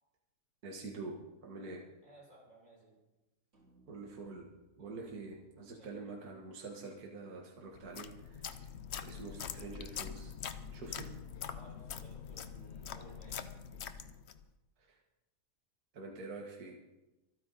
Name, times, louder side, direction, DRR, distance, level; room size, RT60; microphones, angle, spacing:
voice 1, 0.6-1.8 3.9-4.5 4.8-8.7 9.0-10.3 10.7-11.1 14.8-15.0 15.9-16.8, right 3 dB, 65° right, -1 dB, 2.1 m, -46 dB
voice 2, 2.0-3.0 4.8-5.1 5.6-6.1 11.5-13.5, equal, 25° right, -4 dB, 5.8 m, -58 dB
sound 1, 3.5-8.0, right 2 dB, 45° right, 4.1 m, -70 dB
sound 2, 7.7-14.5, left 7 dB, 55° left, 0.8 m, -44 dB
26.0 x 9.6 x 4.0 m, 1.0 s
omnidirectional pair, 1.7 m